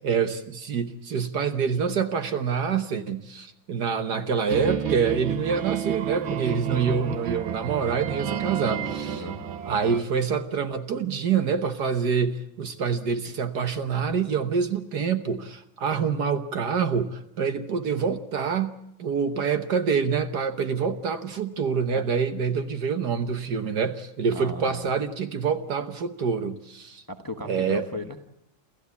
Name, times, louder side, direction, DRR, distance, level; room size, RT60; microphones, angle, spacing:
voice 1, 0.0-9.3 9.7-27.0 27.4-27.9, right 6 dB, 55° right, 9 dB, 1.6 m, -26 dB
sound 1, 4.5-10.0, right 8 dB, 70° right, 2.1 m, -30 dB
voice 2, 9.1-9.5 21.9-22.0 24.3-24.9 27.1-28.3, left 1 dB, 15° left, 6 dB, 1.1 m, -36 dB
28.5 x 14.5 x 8.4 m, 0.85 s
omnidirectional pair, 2.3 m